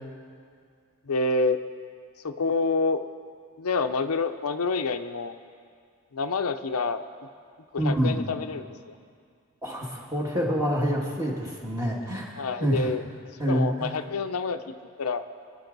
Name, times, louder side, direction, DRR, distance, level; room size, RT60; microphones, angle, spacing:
voice 1, 1.1-1.6 2.2-3.0 3.6-5.3 6.1-7.0 7.7-9.0 12.4-13.0 13.5-14.6 15.0-15.2, left 3 dB, 80° left, 8 dB, 0.6 m, -27 dB
voice 2, 7.8-8.2 9.6-12.3 12.6-12.9 13.4-13.9, equal, 15° right, -2 dB, 1.9 m, -26 dB
25.0 x 10.5 x 4.0 m, 2.2 s
head